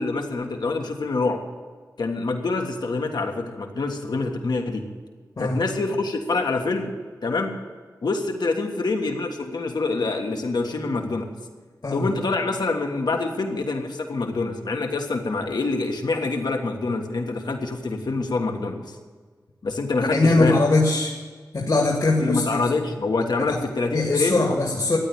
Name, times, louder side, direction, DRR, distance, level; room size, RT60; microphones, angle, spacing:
voice 1, 0.0-1.4 2.0-4.8 5.4-6.9 7.2-7.5 8.0-11.3 11.9-18.8 19.6-20.6 22.2-24.4, left 3 dB, 80° left, 4 dB, 1.5 m, -26 dB
voice 2, 20.0-21.2 21.5-22.6 23.5-23.6 23.9-25.0, left 2 dB, 65° left, 0 dB, 2.0 m, -21 dB
13.5 x 9.4 x 8.7 m, 1.5 s
cardioid pair, 45°, 7 cm